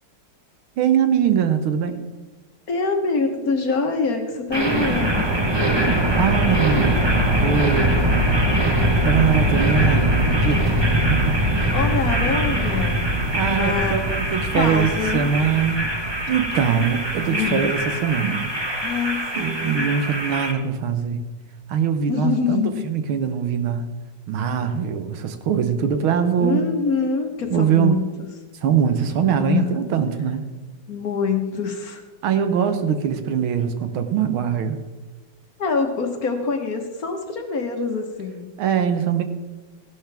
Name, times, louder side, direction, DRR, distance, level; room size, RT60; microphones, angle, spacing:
voice 1, 0.8-2.0 6.2-7.0 7.4-8.0 9.1-11.2 13.3-18.5 19.4-21.2 21.7-23.9 24.3-26.7 27.5-28.0 28.6-30.4 32.2-34.8 38.6-39.2, right 7 dB, 85° right, 9 dB, 1.8 m, -22 dB
voice 2, 2.7-5.3 11.4-13.0 13.4-13.9 14.5-15.3 16.2-16.3 17.3-17.7 18.8-19.7 22.1-22.8 26.4-28.0 29.3-29.9 30.9-32.0 35.6-38.5, left 5 dB, 50° left, 4 dB, 1.6 m, -25 dB
sound 1, 4.5-20.5, right 1 dB, 20° right, 0.8 m, -22 dB
15.5 x 11.5 x 3.5 m, 1.2 s
omnidirectional pair, 2.2 m